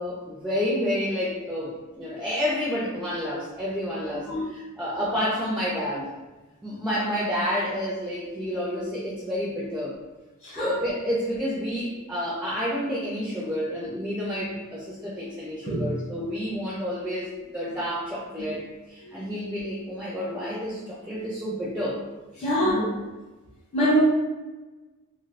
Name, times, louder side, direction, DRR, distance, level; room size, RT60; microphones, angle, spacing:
voice 1, 0.0-6.1 6.6-9.9 10.5-22.0 22.3-22.9, equal, 5° right, -5 dB, 0.4 m, -29 dB
voice 2, 10.4-10.7 15.7-15.9 18.4-18.5 22.4-22.8 23.7-24.0, equal, 30° left, -9 dB, 0.7 m, -24 dB
3.2 x 2.6 x 2.5 m, 1.2 s
head